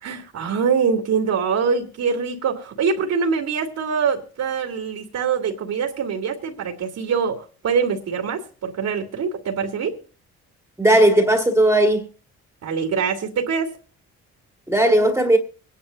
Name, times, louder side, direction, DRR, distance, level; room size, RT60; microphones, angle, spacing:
voice 1, 0.0-9.9 12.6-13.8, right 6 dB, 70° right, 2.6 m, -24 dB
voice 2, 10.8-12.1 14.7-15.4, right 1 dB, 10° right, 2.0 m, -16 dB
25.0 x 10.5 x 2.7 m
cardioid pair, 90°, 30 cm